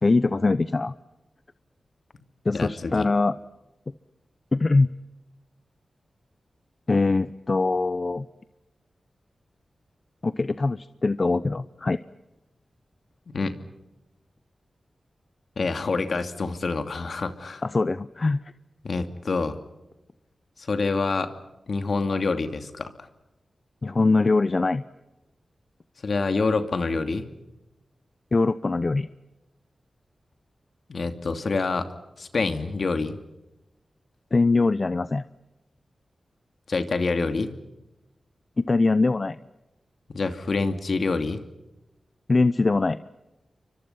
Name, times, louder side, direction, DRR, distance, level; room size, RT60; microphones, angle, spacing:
voice 1, 0.0-0.9 2.4-3.3 4.5-4.9 6.9-8.3 10.2-12.0 17.6-18.4 23.8-24.8 28.3-29.1 34.3-35.2 38.6-39.4 42.3-43.0, left 3 dB, 45° left, 14 dB, 0.8 m, -22 dB
voice 2, 2.5-3.1 13.3-13.6 15.6-17.6 18.8-19.6 20.6-21.3 21.7-22.9 26.0-27.3 30.9-33.2 36.7-37.5 40.1-41.4, left 3 dB, 70° left, 8 dB, 2.7 m, -27 dB
30.0 x 24.5 x 5.7 m, 0.97 s
cardioid pair, 45°, 0 cm